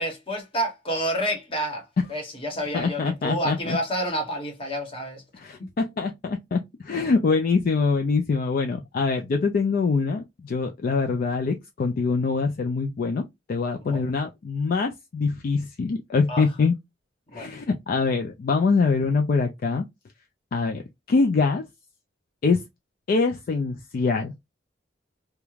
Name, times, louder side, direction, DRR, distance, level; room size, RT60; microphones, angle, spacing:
voice 1, 0.0-5.2 13.8-14.0 16.3-16.5 17.3-17.6, right 1 dB, 30° left, 0.9 m, -29 dB
voice 2, 2.7-3.8 5.4-6.6 6.8-16.7 17.3-19.8 20.5-20.8 21.1-21.6 22.4-22.6 23.1-24.3, left 4 dB, 50° left, 0.3 m, -24 dB
2.4 x 2.1 x 3.0 m
head